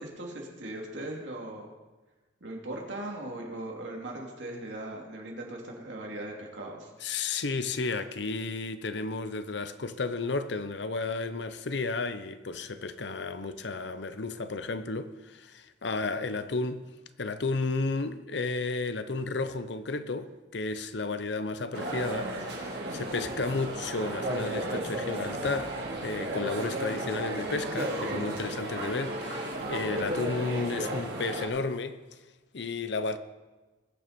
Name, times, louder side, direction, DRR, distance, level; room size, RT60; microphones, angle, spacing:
voice 1, 0.0-1.7 2.4-6.9, right 1 dB, 75° right, 2.8 m, -39 dB
voice 2, 7.0-16.8 17.2-25.7 26.0-32.0 32.5-33.2, left 3 dB, 65° left, 0.7 m, -33 dB
sound 1, 21.7-31.5, right 1 dB, 60° right, 2.6 m, -34 dB
20.5 x 7.0 x 5.2 m
head